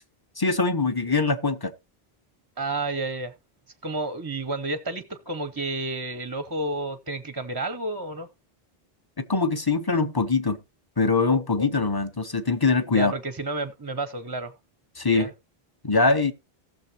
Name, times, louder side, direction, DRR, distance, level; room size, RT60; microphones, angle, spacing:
voice 1, 0.4-1.7 9.2-10.6 11.0-13.1 15.0-15.3 15.8-16.3, left 3 dB, 25° left, 0.8 m, -23 dB
voice 2, 2.6-3.3 3.8-8.3 12.9-14.5 15.1-15.3, right 2 dB, 25° right, 0.6 m, -31 dB
18.0 x 6.7 x 2.8 m
omnidirectional pair, 1.1 m